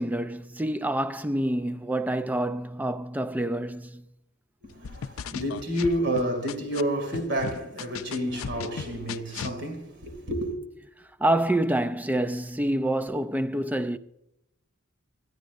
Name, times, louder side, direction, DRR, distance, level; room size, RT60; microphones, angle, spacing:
voice 1, 0.0-4.0 9.0-9.1 11.0-14.0, right 1 dB, 10° right, 0.4 m, -27 dB
voice 2, 4.6-10.5, equal, 55° right, 2.5 m, -30 dB
sound 1, 4.8-6.8 7.1-9.6, left 6 dB, 85° left, 0.5 m, -36 dB
24.5 x 9.3 x 2.6 m
head